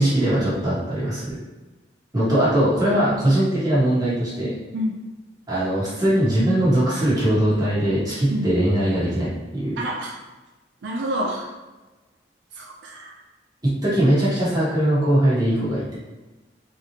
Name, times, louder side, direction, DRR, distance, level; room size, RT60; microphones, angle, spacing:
voice 1, 0.0-1.4 2.1-4.5 5.5-9.8 13.6-16.0, right 1 dB, 20° right, -9 dB, 1.4 m, -21 dB
voice 2, 9.8-10.1 10.8-11.5 12.6-13.1, right 1 dB, 75° right, 0 dB, 0.5 m, -28 dB
3.9 x 3.0 x 2.9 m, 1.2 s
head